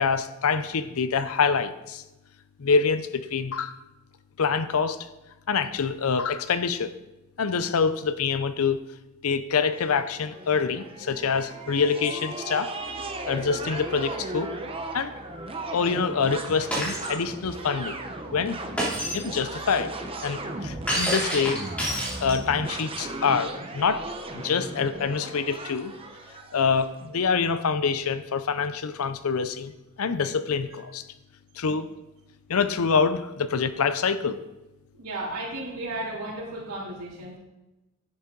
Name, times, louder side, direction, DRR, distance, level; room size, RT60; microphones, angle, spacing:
voice 1, 0.0-2.0 2.6-3.8 4.4-5.1 5.5-6.9 7.4-8.8 9.2-12.7 13.3-14.5 14.9-15.1 15.7-18.0 18.3-18.6 19.1-19.9 20.2-21.6 22.2-24.1 24.3-25.9 26.5-29.7 30.0-31.0 31.6-31.9 32.5-34.4, left 5 dB, 70° left, 13 dB, 0.6 m, -25 dB
sound 1, 9.8-26.9, right 2 dB, 25° right, 0.8 m, -36 dB
Shatter, 16.7-17.1 18.8-19.3 20.9-22.6, right 1 dB, 5° left, 3.4 m, -28 dB
voice 2, 34.9-37.4, right 2 dB, 85° right, -7 dB, 3.4 m, -34 dB
10.5 x 8.5 x 3.9 m, 1.0 s
head